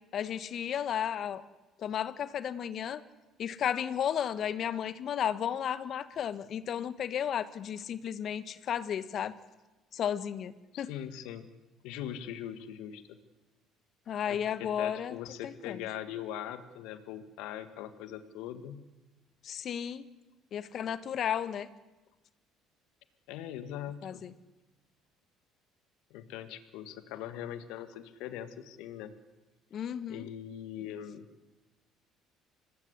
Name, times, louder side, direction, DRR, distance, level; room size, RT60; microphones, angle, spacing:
voice 1, 0.1-1.4 1.8-3.0 3.4-9.3 9.9-10.9 14.1-15.2 15.4-15.8 19.4-20.0 20.5-21.7 24.0-24.3 29.7-30.3, left 9 dB, 55° left, 15 dB, 1.4 m, -33 dB
voice 2, 10.7-11.5 11.8-13.2 14.3-18.8 23.3-24.2 26.1-29.2 30.1-31.3, left 10 dB, 75° left, 11 dB, 1.9 m, -41 dB
25.5 x 19.0 x 8.3 m, 1.1 s
hypercardioid pair, 65°, 0 cm